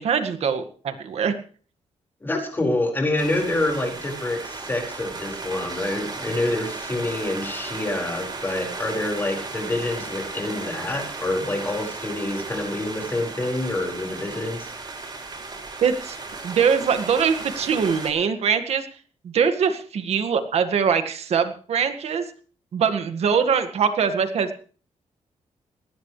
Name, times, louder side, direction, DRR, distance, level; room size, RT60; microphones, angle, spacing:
voice 1, 0.0-1.3 15.8-16.2 16.4-18.9 19.2-22.3 22.7-24.6, right 6 dB, 60° right, 7 dB, 1.9 m, -22 dB
voice 2, 2.2-14.7, left 2 dB, 20° left, 1 dB, 5.3 m, -27 dB
sound 1, 3.2-18.1, right 3 dB, 35° right, 6.7 m, -35 dB
20.5 x 17.5 x 3.3 m, 0.42 s
wide cardioid pair, 165°, 12 cm